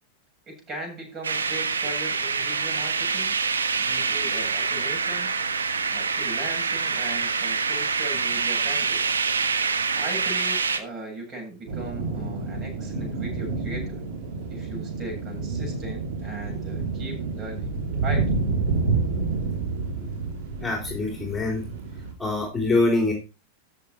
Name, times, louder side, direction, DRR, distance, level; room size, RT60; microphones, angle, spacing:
voice 1, 0.5-3.3 3.8-5.3 5.9-9.0 9.9-14.0 14.5-17.7 18.0-18.3, right 2 dB, 30° right, 0 dB, 7.9 m, -38 dB
sound 1, 1.2-10.8, right 5 dB, 75° right, 1.4 m, -26 dB
sound 2, 11.7-22.1, right 4 dB, 50° right, 3.1 m, -29 dB
voice 2, 20.6-21.6 22.2-23.1, left 2 dB, 15° left, 1 dB, 3.5 m, -24 dB
13.5 x 7.5 x 4.5 m, 0.30 s
figure-of-eight pair, 90°, 0 cm